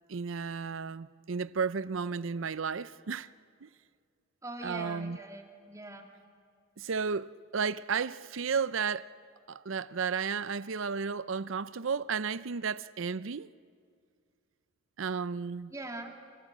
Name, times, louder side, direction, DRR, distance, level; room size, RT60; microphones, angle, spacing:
voice 1, 0.1-3.3 3.6-3.7 4.6-5.2 6.8-9.1 9.5-13.5 15.0-15.7, right 5 dB, 70° right, 0.6 m, -33 dB
voice 2, 4.4-6.1 15.7-16.1, right 2 dB, 15° right, 2.2 m, -42 dB
29.0 x 27.0 x 7.4 m
head